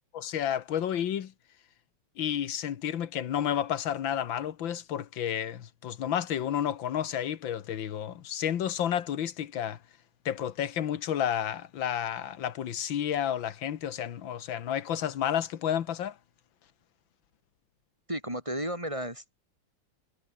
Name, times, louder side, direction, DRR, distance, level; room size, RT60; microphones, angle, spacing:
voice 1, 0.1-1.3 2.2-9.8 10.3-16.2, left 10 dB, 75° left, 2.0 m, -31 dB
voice 2, 18.1-19.4, equal, 15° right, 8.2 m, -33 dB
omnidirectional pair, 2.1 m